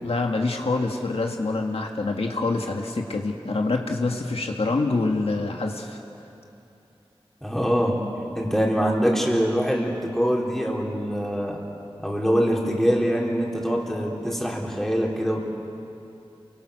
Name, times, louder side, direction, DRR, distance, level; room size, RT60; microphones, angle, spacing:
voice 1, 0.0-6.0, left 3 dB, 80° left, 2 dB, 1.8 m, -26 dB
voice 2, 7.4-8.0 8.3-11.6 12.0-15.5, equal, 5° left, -2 dB, 3.8 m, -24 dB
28.5 x 23.5 x 6.5 m, 2.8 s
wide cardioid pair, 70°, 10 cm